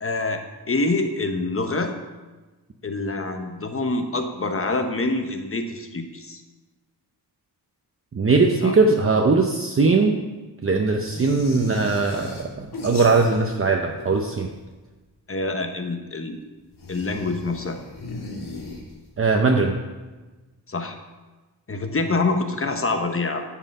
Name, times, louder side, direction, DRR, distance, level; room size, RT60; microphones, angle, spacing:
voice 1, 0.0-0.4 0.7-1.9 2.8-6.4 8.6-8.7 15.3-16.4 16.9-17.8 20.7-21.0 21.7-23.4, left 3 dB, 35° left, 5 dB, 1.0 m, -26 dB
voice 2, 8.1-10.2 10.6-14.5 19.2-19.8, right 3 dB, 35° right, 2 dB, 0.7 m, -20 dB
sound 1, 11.1-13.7 13.9-14.7 16.7-19.2, left 2 dB, 65° left, 2.1 m, -37 dB
11.0 x 7.7 x 5.4 m, 1.2 s
wide cardioid pair, 165°, 41 cm